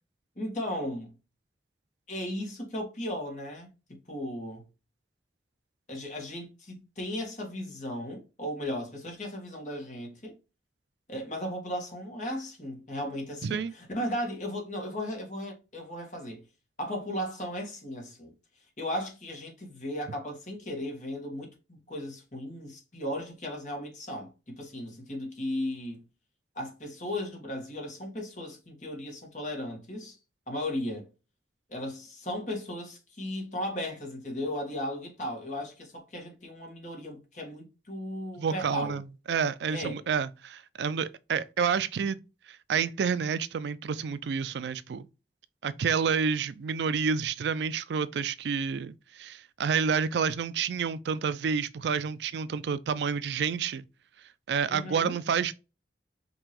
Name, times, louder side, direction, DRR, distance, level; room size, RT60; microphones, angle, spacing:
voice 1, 0.4-1.1 2.1-4.7 5.9-10.4 11.1-16.4 16.8-18.3 18.8-26.0 26.5-30.2 30.5-31.1 31.7-39.0 39.7-40.0 54.7-55.1, left 1 dB, 45° left, 1.5 m, -36 dB
voice 2, 13.4-13.7 38.4-42.2 42.7-45.1 45.6-53.8 54.5-55.5, right 6 dB, 75° right, 0.4 m, -29 dB
5.3 x 2.9 x 3.0 m
head